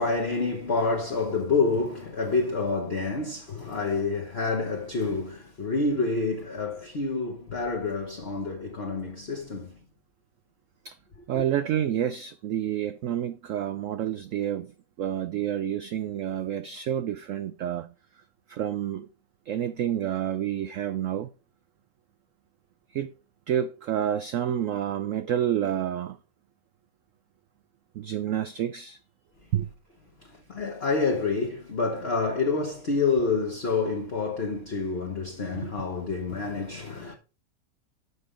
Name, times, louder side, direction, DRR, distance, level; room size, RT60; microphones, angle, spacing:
voice 1, 0.0-9.8 11.3-11.4 30.2-37.1, left 4 dB, 40° left, 1.2 m, -28 dB
voice 2, 11.3-14.7 15.0-17.9 18.5-19.1 19.5-21.3 22.9-23.1 23.5-26.2 27.9-29.0 29.5-29.7 35.5-36.1, right 10 dB, 85° right, 0.7 m, -29 dB
6.8 x 5.5 x 5.0 m
omnidirectional pair, 1.9 m